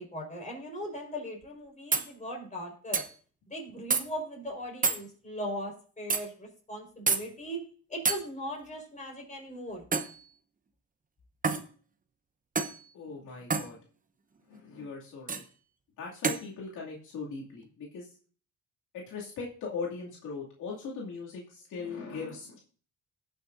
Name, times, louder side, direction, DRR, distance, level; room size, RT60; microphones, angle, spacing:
voice 1, 0.0-3.0 3.5-7.6 7.9-9.8, equal, 25° left, 0 dB, 4.7 m, -39 dB
sound 1, 1.4-1.5 1.9-2.1 2.9-3.1 3.9-4.0 4.8-5.0 6.1-6.2 7.1-7.2 8.0-8.2 9.9-10.2 11.4-11.7 12.5-12.8 13.5-13.7 15.3-15.4 16.2-16.4, right 5 dB, 25° right, 0.9 m, -27 dB
voice 2, 12.9-13.8 14.5-15.4 16.0-18.1 18.9-22.6, left 4 dB, 80° left, -3 dB, 2.5 m, -39 dB
18.0 x 6.5 x 2.6 m, 0.43 s
cardioid pair, 90°, 30 cm